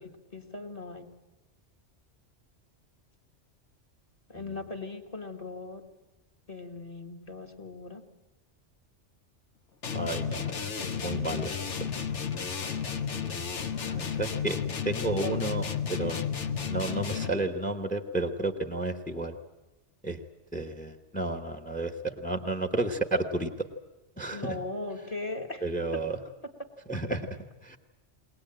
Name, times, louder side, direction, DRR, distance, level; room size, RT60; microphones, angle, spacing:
voice 1, 0.0-1.1 4.3-5.9 6.5-8.0 10.8-11.8 15.2-15.3 24.3-25.7 25.9-26.0 27.1-27.2, left 2 dB, 30° left, 6 dB, 1.5 m, -39 dB
sound 1, 9.8-17.5, left 7 dB, 70° left, 1.4 m, -32 dB
voice 2, 9.9-10.4 11.0-11.5 13.8-14.6 14.8-15.6 15.9-16.2 16.7-19.3 20.0-20.2 20.5-21.9 22.2-23.5 24.2-24.6 25.6-26.2 26.9-27.2 27.7-27.8, right 2 dB, 5° left, 8 dB, 1.0 m, -31 dB
22.0 x 18.5 x 8.8 m, 1.1 s
omnidirectional pair, 1.2 m